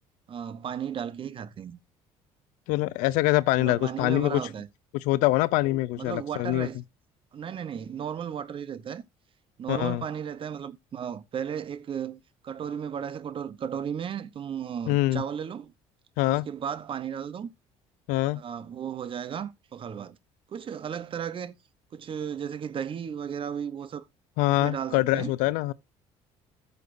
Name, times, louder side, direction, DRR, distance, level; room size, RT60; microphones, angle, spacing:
voice 1, 0.3-1.8 3.6-4.7 6.0-6.8 7.3-9.0 9.6-15.7 16.3-17.5 18.3-20.2 20.5-21.6 21.9-24.0 24.5-25.3, right 8 dB, 45° right, 0.9 m, -35 dB
voice 2, 2.7-4.4 5.1-6.7 9.7-10.0 14.9-15.2 16.2-16.4 18.1-18.4 24.4-25.7, left 18 dB, 85° left, 0.5 m, -24 dB
13.5 x 6.7 x 2.6 m
cardioid pair, 95°, 13 cm